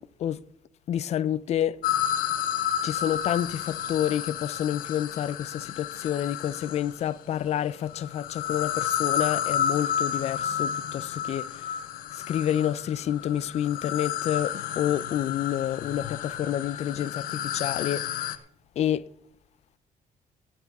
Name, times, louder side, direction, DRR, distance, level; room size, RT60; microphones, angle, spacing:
voice 1, 0.9-1.8 2.8-11.7 12.1-18.3 18.8-19.1, left 10 dB, 50° left, 0.4 m, -29 dB
sound 1, 1.8-7.1 7.9-18.4, left 10 dB, 80° left, 0.8 m, -31 dB
15.5 x 11.0 x 3.6 m
cardioid pair, 160°, 14 cm